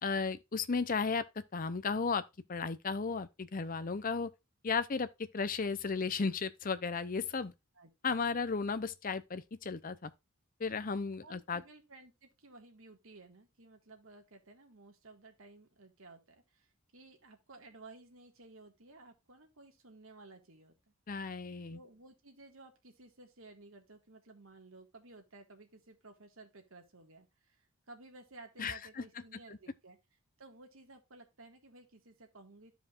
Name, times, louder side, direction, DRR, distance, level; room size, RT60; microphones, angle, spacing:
voice 1, 0.0-1.2 1.5-2.2 2.5-4.3 4.6-5.1 5.3-7.5 8.0-10.1 10.6-11.6 21.1-21.8 28.6-29.0 29.5-29.6, left 5 dB, 40° left, 0.6 m, -34 dB
voice 2, 7.7-8.1 11.2-20.7 21.7-30.0 30.4-32.7, right 2 dB, 65° right, 1.8 m, -56 dB
13.0 x 5.0 x 2.5 m
head